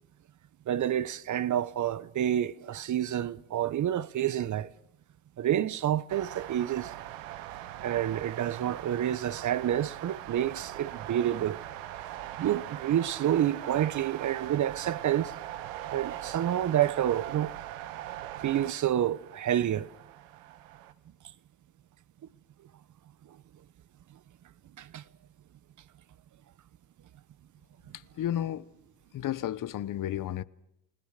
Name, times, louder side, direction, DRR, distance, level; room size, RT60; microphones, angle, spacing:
voice 1, 0.7-4.7 5.4-6.9 7.8-11.6 12.4-15.3 15.9-17.5 18.4-19.9 24.8-25.0, right 11 dB, 45° right, 0.9 m, -28 dB
sound 1, 6.1-20.9, right 13 dB, 85° right, 1.6 m, -41 dB
voice 2, 27.9-28.7 29.1-30.4, left 11 dB, 45° left, 1.0 m, -32 dB
29.5 x 17.5 x 6.6 m
supercardioid pair, 85°, 43 cm